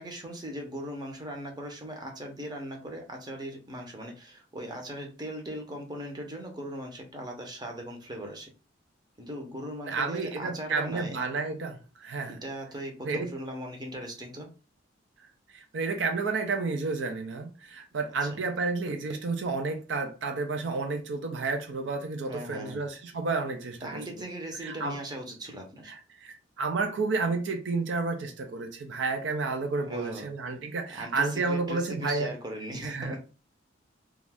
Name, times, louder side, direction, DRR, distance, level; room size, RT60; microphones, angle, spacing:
voice 1, 0.0-8.5 9.2-11.2 12.3-14.5 18.2-18.3 22.3-22.8 23.8-25.9 29.9-30.3 30.9-33.2, right 1 dB, 20° right, 0.6 m, -39 dB
voice 2, 9.9-12.4 13.0-13.3 15.5-24.0 24.6-25.0 25.9-32.3 32.8-33.1, right 3 dB, 65° right, 0.4 m, -31 dB
2.5 x 2.3 x 3.3 m
head